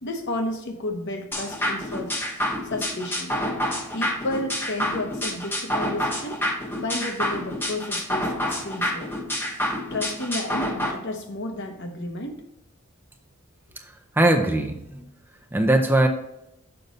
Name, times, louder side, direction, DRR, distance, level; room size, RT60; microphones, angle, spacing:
voice 1, 0.0-2.1 2.6-3.3 3.9-6.4 6.8-9.1 9.9-12.4, left 1 dB, 55° left, 5 dB, 1.0 m, -32 dB
sound 1, 1.3-10.9, equal, 10° left, 0.9 m, -28 dB
voice 2, 14.2-15.1 15.5-16.1, right 1 dB, 10° right, 4 dB, 0.6 m, -20 dB
6.8 x 5.3 x 4.1 m, 0.85 s
head